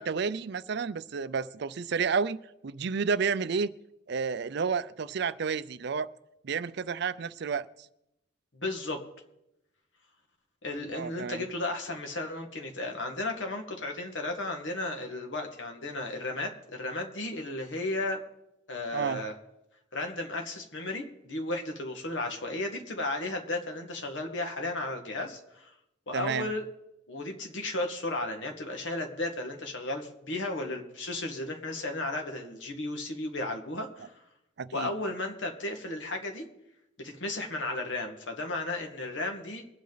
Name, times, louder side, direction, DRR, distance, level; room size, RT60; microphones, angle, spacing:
voice 1, 0.0-2.4 2.6-3.7 4.1-6.1 6.4-7.6 10.9-11.4 18.9-19.2 26.1-26.5 34.6-34.9, right 5 dB, 60° right, 16 dB, 0.5 m, -30 dB
voice 2, 8.5-9.0 10.6-18.2 18.7-19.3 19.9-25.7 26.1-26.6 27.1-34.2 34.7-36.4 37.0-39.6, left 2 dB, 75° left, 3 dB, 1.8 m, -34 dB
22.5 x 8.4 x 4.0 m, 0.86 s
head